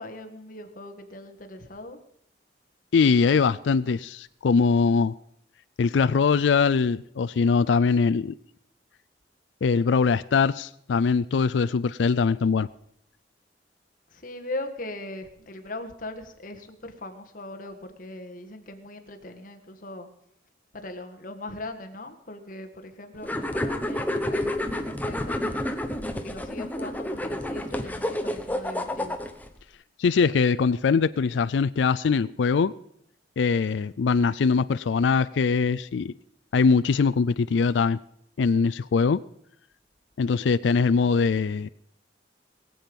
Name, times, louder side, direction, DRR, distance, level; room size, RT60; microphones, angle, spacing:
voice 1, 0.0-2.0 14.1-20.1 20.7-25.4 26.0-29.2, left 2 dB, 50° left, 1.6 m, -39 dB
voice 2, 2.9-5.1 5.8-8.3 9.6-12.7 30.0-32.7 33.4-36.1 36.5-38.0 38.4-39.2 40.2-41.7, left 5 dB, 90° left, 0.4 m, -22 dB
sound 1, 23.2-29.5, left 1 dB, 10° left, 0.9 m, -29 dB
21.5 x 7.8 x 5.3 m
head